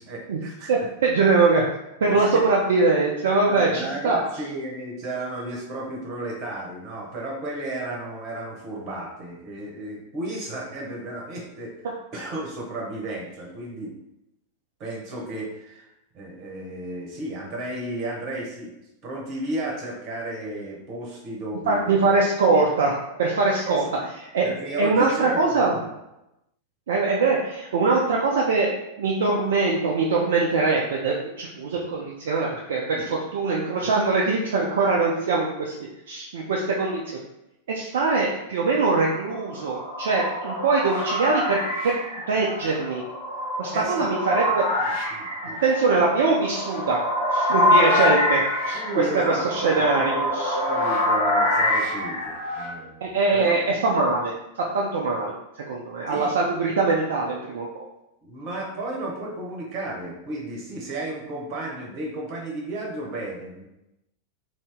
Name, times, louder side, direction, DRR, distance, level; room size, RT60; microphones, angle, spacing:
voice 1, 0.0-0.7 2.0-2.4 3.5-13.9 14.8-15.9 16.1-18.7 19.0-22.1 23.6-24.0 24.4-25.9 31.7-31.9 32.9-33.1 33.8-33.9 43.7-44.1 44.4-44.5 44.8-45.6 48.7-53.8 56.1-56.3 58.2-63.7, right 1 dB, 40° right, -1 dB, 1.0 m, -33 dB
voice 2, 0.7-1.6 2.0-4.2 21.7-23.8 24.3-24.5 24.8-25.7 26.9-28.7 29.0-35.7 36.1-37.2 37.7-41.6 41.8-42.0 42.3-43.0 43.6-44.6 44.9-45.1 45.6-47.0 47.3-48.4 48.7-48.8 49.1-50.6 53.0-54.3 54.7-55.3 55.7-57.8, right 3 dB, 60° right, -2 dB, 0.4 m, -22 dB
sound 1, 39.3-52.7, left 1 dB, 55° left, 1.1 m, -25 dB
2.7 x 2.7 x 3.4 m, 0.91 s
figure-of-eight pair, 90°, 0 cm